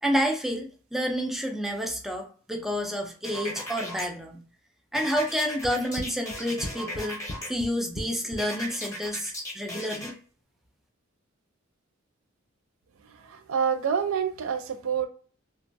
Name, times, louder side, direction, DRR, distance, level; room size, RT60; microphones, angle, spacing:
voice 1, 0.0-4.4 4.9-10.1, equal, ahead, 0.4 m, -29 dB
sound 1, 3.2-4.1 4.9-7.5 8.4-10.1, left 1 dB, 15° left, 0.8 m, -37 dB
sound 2, 5.6-8.4, left 1 dB, 45° left, 0.6 m, -36 dB
voice 2, 13.2-15.1, right 7 dB, 85° right, 0.4 m, -27 dB
3.0 x 2.3 x 2.6 m
head